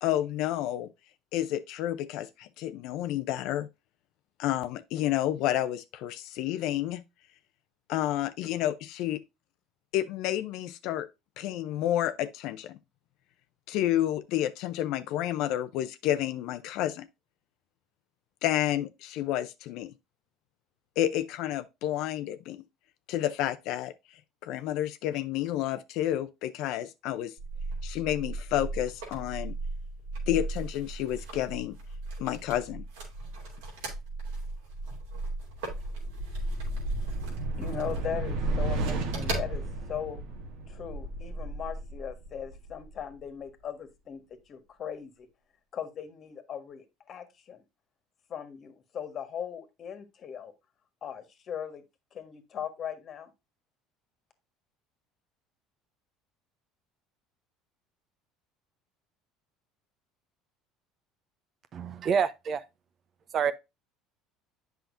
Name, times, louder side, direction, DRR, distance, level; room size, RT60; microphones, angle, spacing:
voice 1, 0.0-0.9 1.3-3.7 4.4-7.0 7.9-9.2 9.9-11.1 11.4-12.8 13.7-17.1 18.4-19.9 21.0-22.6 23.1-23.9 24.4-27.3 27.8-29.5 30.3-31.8 32.2-32.8, left 12 dB, 70° left, 0.5 m, -30 dB
sound 1, 27.4-40.0, right 2 dB, 90° right, 2.8 m, -38 dB
sound 2, 34.8-43.2, right 2 dB, 70° right, 1.5 m, -34 dB
voice 2, 37.6-40.2 40.7-44.2 44.5-45.3 45.7-47.6 48.3-50.5 51.0-51.8 52.1-53.3, left 8 dB, 45° left, 1.5 m, -39 dB
voice 3, 61.7-62.6 63.3-63.5, right 7 dB, 45° right, 0.8 m, -27 dB
8.0 x 5.7 x 2.6 m
supercardioid pair, 95°, 0 cm